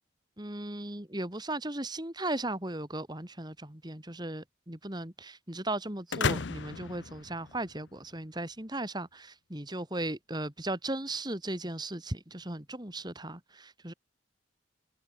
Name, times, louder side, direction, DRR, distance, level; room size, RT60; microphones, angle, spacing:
voice 1, 0.4-13.9, right 1 dB, 20° right, 3.1 m, -37 dB
sound 1, 6.1-8.0, left 5 dB, 70° left, 0.8 m, -33 dB
head